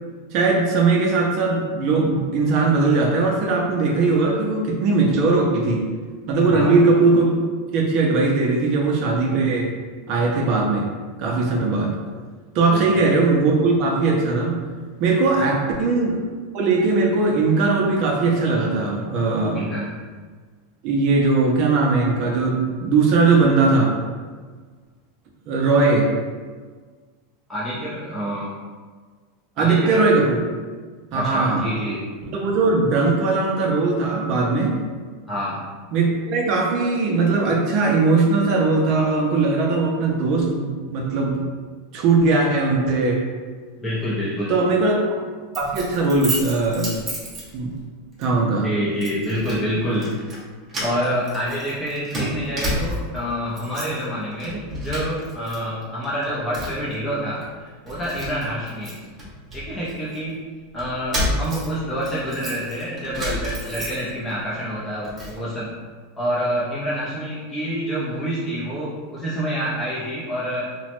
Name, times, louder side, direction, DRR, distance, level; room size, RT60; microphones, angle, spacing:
voice 1, 0.3-5.8 6.3-7.4 7.7-9.7 10.1-10.9 11.2-11.9 12.5-14.6 15.0-16.2 16.5-19.7 20.8-23.9 25.5-26.1 29.6-30.4 31.1-31.7 32.3-34.7 35.9-41.5 41.9-43.2 44.5-45.2 45.6-46.9 47.5-47.7 48.2-48.7, right 3 dB, 45° right, 0 dB, 0.5 m, -19 dB
voice 2, 6.5-6.8 12.7-12.9 15.5-15.7 19.5-19.9 27.5-28.6 29.6-30.1 31.1-32.0 35.3-35.6 43.8-44.5 48.6-50.1 50.8-59.0 59.5-60.4 60.7-65.7 66.2-70.7, equal, 10° left, -8 dB, 0.5 m, -27 dB
Keys jangling, 45.5-47.8 48.2-48.4 49.0-49.6 49.9-50.4 50.7-53.2 53.5-54.0 54.4-55.6 55.8-56.9 57.4-57.5 57.9-60.2 60.8-64.3 64.7-65.4, equal, 20° right, 0.8 m, -31 dB
2.9 x 2.1 x 2.9 m, 1.5 s
supercardioid pair, 155°, 0 cm